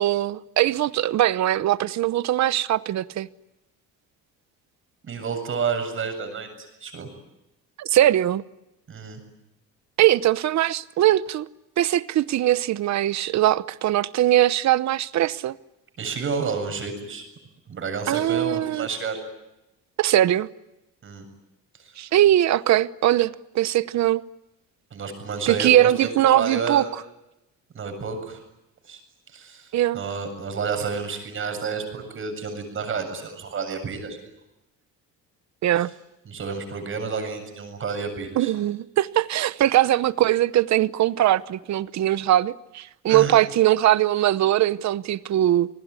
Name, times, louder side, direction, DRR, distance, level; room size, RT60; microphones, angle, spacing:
voice 1, 0.0-3.3 7.8-8.4 10.0-11.5 11.8-15.6 18.1-18.9 20.0-20.5 22.0-24.2 25.5-26.8 29.7-30.0 35.6-35.9 38.4-45.7, right 13 dB, 60° right, 0.9 m, -21 dB
voice 2, 5.0-7.1 8.9-9.2 16.0-17.2 17.7-19.2 21.0-21.2 21.8-21.9 24.9-26.9 27.7-28.4 28.8-29.0 29.3-34.2 35.7-35.8 36.3-38.5 43.1-43.3, right 5 dB, 40° right, 7.6 m, -30 dB
29.0 x 20.5 x 9.7 m
cardioid pair, 130°, 31 cm